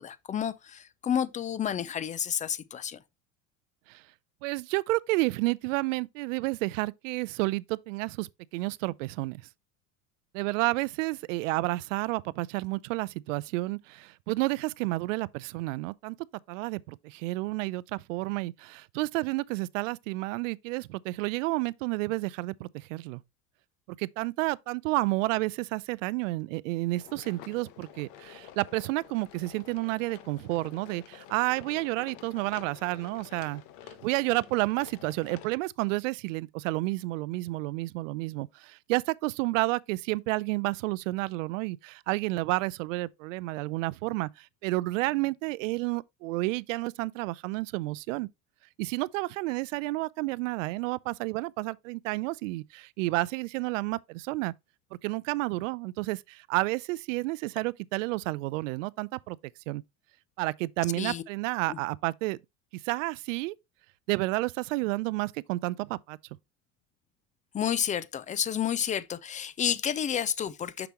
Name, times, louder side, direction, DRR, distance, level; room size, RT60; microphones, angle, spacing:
voice 1, 0.0-3.0 61.0-61.2 61.7-61.8 67.5-70.9, left 9 dB, 20° left, 0.5 m, -30 dB
voice 2, 4.4-9.4 10.3-16.2 16.5-23.2 23.9-33.6 34.0-48.3 48.8-54.5 55.0-59.4 59.7-59.8 60.4-62.4 62.8-63.5 64.1-66.2, right 21 dB, 65° right, 0.5 m, -30 dB
sound 1, 27.0-35.6, left 10 dB, 60° left, 1.2 m, -49 dB
6.7 x 6.0 x 3.0 m
hypercardioid pair, 95°, 41 cm